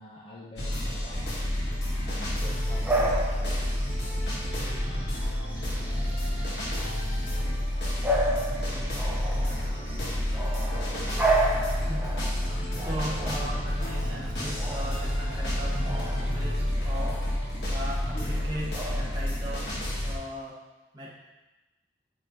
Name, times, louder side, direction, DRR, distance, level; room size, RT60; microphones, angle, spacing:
voice 1, 0.0-1.5 2.0-3.6, left 2 dB, 30° left, -5 dB, 0.6 m, -46 dB
sound 1, 0.6-20.2, left 1 dB, 70° left, 1.6 m, -29 dB
Bark / Bird vocalization bird call bird song, 2.2-19.8, right 1 dB, 10° right, 0.7 m, -34 dB
voice 2, 11.8-12.4 12.8-15.8 16.2-17.2 17.7-19.7 20.0-20.6 20.9-21.1, equal, 25° right, -7 dB, 1.5 m, -38 dB
8.8 x 3.2 x 3.9 m, 1.1 s
head